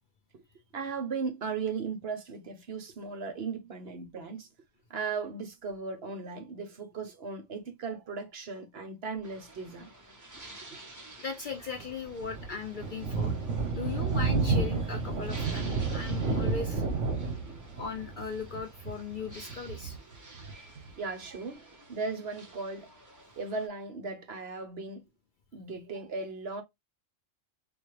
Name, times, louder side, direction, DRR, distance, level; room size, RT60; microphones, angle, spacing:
voice 1, 0.7-4.5 4.9-9.9 10.7-10.8 21.0-22.9 23.4-25.1 25.5-26.6, right 4 dB, 60° right, 1.0 m, -37 dB
sound 1, 9.2-23.7, right 2 dB, 15° right, 0.8 m, -51 dB
voice 2, 11.2-13.4 13.7-16.8 17.8-20.0, left 5 dB, 55° left, 0.6 m, -38 dB
Thunder, 11.8-20.9, right 4 dB, 75° right, 1.3 m, -31 dB
4.2 x 2.4 x 3.1 m
omnidirectional pair, 1.3 m